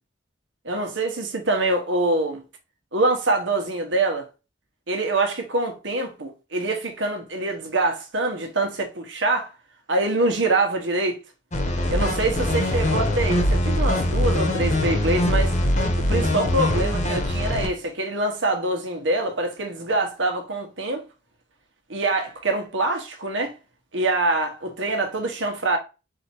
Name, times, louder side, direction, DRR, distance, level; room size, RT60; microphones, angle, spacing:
voice 1, 0.6-2.4 2.9-4.3 4.9-9.5 9.9-11.2 11.9-15.5 16.1-21.1 21.9-23.5 23.9-25.8, right 2 dB, 85° right, 1.2 m, -25 dB
sound 1, 11.5-17.7, left 1 dB, 40° left, 0.8 m, -22 dB
4.3 x 2.8 x 4.5 m
head